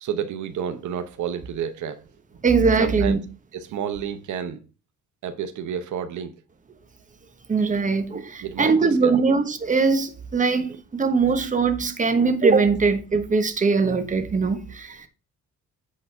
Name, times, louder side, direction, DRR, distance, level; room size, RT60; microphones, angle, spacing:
voice 1, 0.0-2.0 2.8-3.2 3.5-4.6 5.2-6.4 8.4-9.2, right 8 dB, 75° right, 1.0 m, -30 dB
voice 2, 2.4-3.2 7.5-15.1, right 4 dB, 25° right, 1.2 m, -21 dB
8.5 x 4.1 x 5.4 m
cardioid pair, 115°, 30 cm